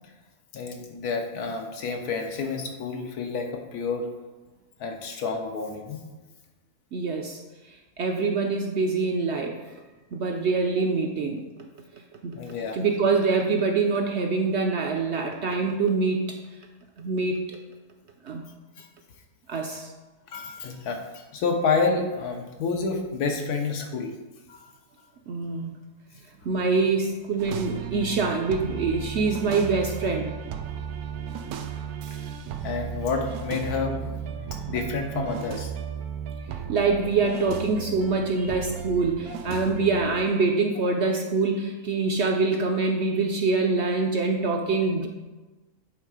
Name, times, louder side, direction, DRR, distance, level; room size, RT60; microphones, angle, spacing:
voice 1, 0.5-4.1 4.8-6.0 12.3-12.8 18.8-18.9 20.3-24.1 24.5-24.6 32.6-34.1 34.7-35.7, left 4 dB, 85° left, 4 dB, 1.4 m, -29 dB
voice 2, 6.9-7.4 8.0-9.6 10.1-11.4 12.2-12.4 12.7-16.2 17.0-17.6 18.2-18.4 19.5-19.9 25.3-25.7 26.4-30.3 36.7-45.1, right 4 dB, 60° right, 3 dB, 0.7 m, -25 dB
sound 1, 27.4-40.3, right 8 dB, 80° right, 1.1 m, -35 dB
8.2 x 3.7 x 4.8 m, 1.2 s
omnidirectional pair, 1.6 m